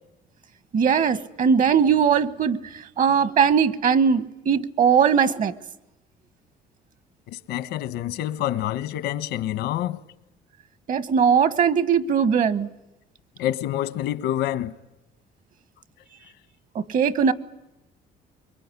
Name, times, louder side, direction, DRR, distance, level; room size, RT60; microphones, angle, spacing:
voice 1, 0.7-2.6 3.0-5.5 10.9-12.7 16.7-17.3, right 7 dB, 50° right, 1.4 m, -20 dB
voice 2, 7.3-10.0 13.4-14.7, left 12 dB, 85° left, 1.3 m, -27 dB
25.0 x 22.5 x 9.8 m
cardioid pair, 110°, 17 cm